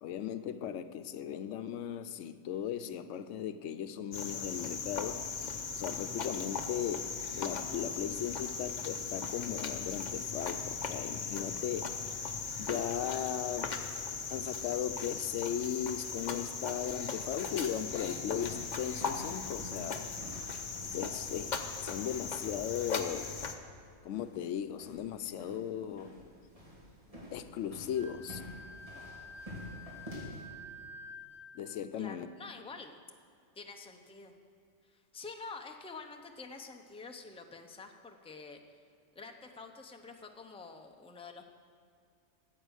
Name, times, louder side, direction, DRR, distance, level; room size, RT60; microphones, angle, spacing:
voice 1, 0.0-12.0 12.6-13.8 14.3-20.1 20.9-21.6 21.8-23.4 24.0-26.2 27.3-28.4 31.5-32.3, left 9 dB, 80° left, 0.9 m, -37 dB
Cricket, 4.1-23.5, left 5 dB, 40° left, 0.8 m, -38 dB
sound 1, 18.0-30.5, equal, 30° right, 2.8 m, -50 dB
Wind instrument woodwind instrument, 27.9-31.7, left 1 dB, 25° left, 1.5 m, -49 dB
voice 2, 32.0-33.0 33.5-34.3 34.8-38.8 39.1-41.4, left 4 dB, 5° left, 0.6 m, -47 dB
14.0 x 8.2 x 6.4 m
omnidirectional pair, 1.3 m